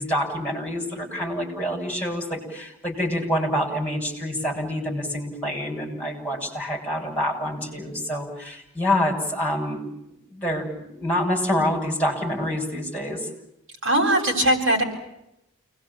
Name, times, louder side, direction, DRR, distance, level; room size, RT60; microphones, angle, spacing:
voice 1, 0.0-9.8 10.1-13.3, left 1 dB, 5° left, 0 dB, 7.8 m, -27 dB
voice 2, 13.8-14.8, right 1 dB, 55° right, 1 dB, 7.6 m, -20 dB
30.0 x 21.0 x 8.9 m, 0.84 s
head